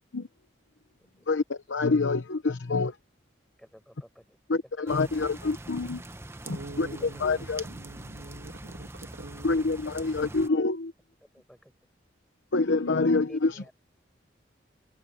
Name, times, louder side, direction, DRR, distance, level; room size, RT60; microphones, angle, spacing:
voice 1, 1.3-2.9 4.5-6.0 6.8-7.6 9.4-10.9 12.5-13.6, left 3 dB, 75° left, 0.9 m, -26 dB
voice 2, 3.6-4.4 6.8-7.1 11.3-11.7 13.3-13.7, equal, ahead, 5.1 m, -52 dB
sound 1, 4.9-10.5, right 1 dB, 15° right, 0.7 m, -43 dB
voice 3, 6.4-9.8, right 2 dB, 75° right, 2.4 m, -45 dB
open air
head